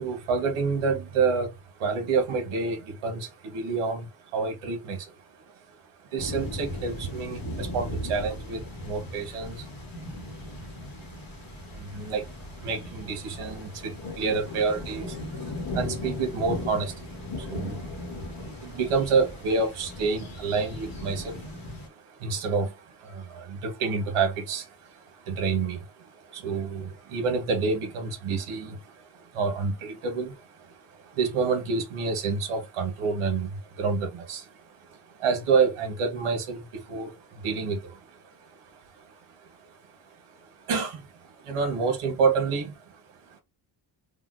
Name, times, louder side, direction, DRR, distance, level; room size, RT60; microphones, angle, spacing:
voice 1, 0.0-43.4, right 4 dB, 90° right, 1.2 m, -29 dB
sound 1, 6.2-21.9, left 1 dB, 45° left, 1.1 m, -37 dB
3.6 x 2.2 x 2.5 m
cardioid pair, 120°, 50 cm